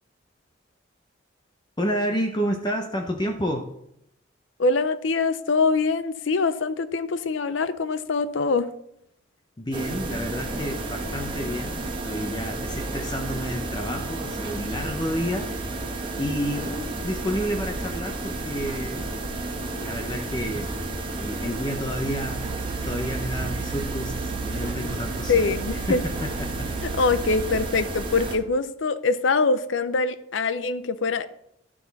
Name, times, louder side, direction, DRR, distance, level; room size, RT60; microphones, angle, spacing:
voice 1, 1.8-3.7 9.6-15.5 16.1-19.1 19.8-20.7 21.2-22.4 22.8-25.6 25.9-26.7, equal, 20° left, 3 dB, 0.6 m, -30 dB
voice 2, 4.6-8.7 25.3-26.0 26.9-31.3, left 4 dB, 75° left, 14 dB, 0.6 m, -24 dB
sound 1, 9.7-28.4, right 2 dB, 25° right, 1.2 m, -32 dB
sound 2, 22.1-27.7, right 5 dB, 80° right, 0.6 m, -35 dB
11.5 x 6.1 x 4.0 m, 0.78 s
head